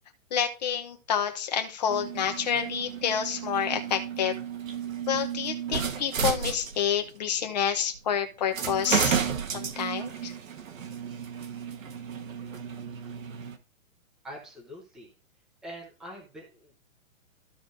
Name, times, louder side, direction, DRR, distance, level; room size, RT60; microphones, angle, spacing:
voice 1, 0.3-4.3 5.1-9.3 9.5-10.3, left 8 dB, 30° left, 5 dB, 0.8 m, -28 dB
sound 1, 1.9-7.1 8.0-8.1 8.5-13.6, right 7 dB, 75° right, 1.3 m, -33 dB
voice 2, 14.2-15.1 15.6-16.7, equal, ahead, -2 dB, 0.7 m, -44 dB
14.5 x 5.0 x 2.6 m, 0.31 s
hypercardioid pair, 170°, 40 cm